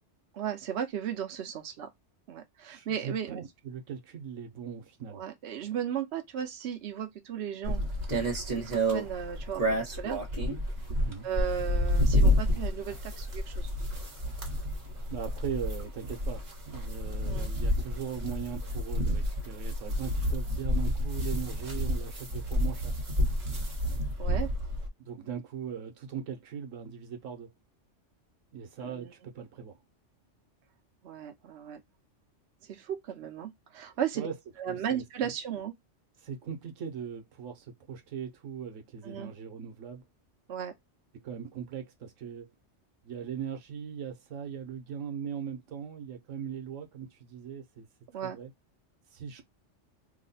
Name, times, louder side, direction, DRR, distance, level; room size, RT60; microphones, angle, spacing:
voice 1, 0.3-1.9 2.3-3.4 5.1-7.8 8.6-10.2 11.2-13.7 17.2-17.5 24.2-24.5 28.8-29.1 31.0-31.8 32.6-34.3 34.6-35.7 39.0-39.3 40.5-40.7 48.1-48.4, right 9 dB, 65° right, 0.9 m, -35 dB
voice 2, 2.7-5.2 11.0-11.3 15.1-22.9 25.0-27.5 28.5-29.8 34.1-34.3 34.7-35.0 36.2-40.0 41.2-42.5 43.0-47.9 48.2-48.5 49.1-49.4, right 7 dB, 85° right, 1.1 m, -39 dB
sound 1, 7.6-24.9, equal, 40° right, 1.1 m, -29 dB
3.1 x 2.1 x 3.9 m
omnidirectional pair, 1.3 m